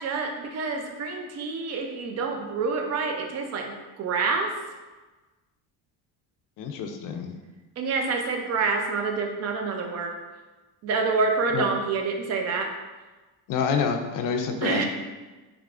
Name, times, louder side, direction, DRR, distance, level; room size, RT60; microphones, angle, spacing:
voice 1, 0.0-4.5 7.8-10.1 10.8-12.7 14.6-14.8, right 4 dB, 40° right, 3 dB, 0.5 m, -27 dB
voice 2, 6.6-7.3 11.5-11.6 13.5-14.8, left 6 dB, 50° left, 5 dB, 0.5 m, -27 dB
3.5 x 3.3 x 2.5 m, 1.2 s
cardioid pair, 145°, 42 cm